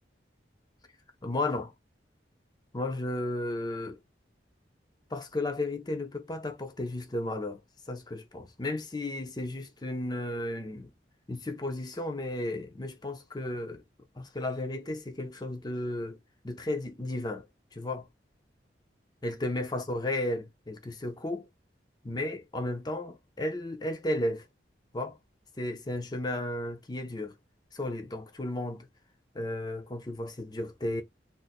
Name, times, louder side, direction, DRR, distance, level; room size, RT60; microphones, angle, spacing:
voice 1, 1.2-1.7 2.7-4.0 5.1-10.9 11.3-13.8 14.2-17.5 17.7-18.1 19.2-21.5 22.0-24.5 24.9-25.2 25.6-27.3 27.7-28.9 29.3-31.0, left 1 dB, 20° left, 0.5 m, -34 dB
2.5 x 2.1 x 4.0 m
head